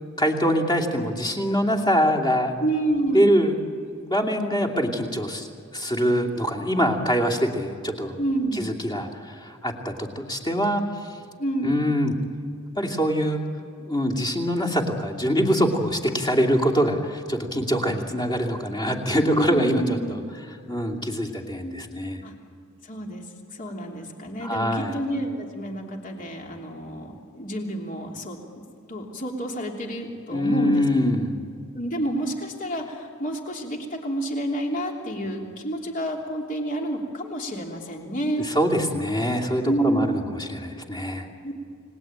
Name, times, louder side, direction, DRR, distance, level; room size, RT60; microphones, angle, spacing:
voice 1, 0.2-2.6 3.1-3.5 3.9-5.5 5.7-8.2 8.6-10.8 11.6-12.2 12.8-13.4 13.9-20.2 20.7-22.2 24.4-24.9 30.3-31.4 38.4-41.3, equal, 20° left, 2 dB, 2.8 m, -24 dB
voice 2, 2.6-3.4 8.2-8.7 11.4-11.9 19.2-20.2 22.2-22.3 22.8-23.2 23.5-28.4 28.9-30.8 31.7-38.5 39.6-40.2 41.4-41.5, right 1 dB, 40° left, 1 dB, 3.2 m, -29 dB
29.5 x 19.5 x 8.9 m, 2.4 s
head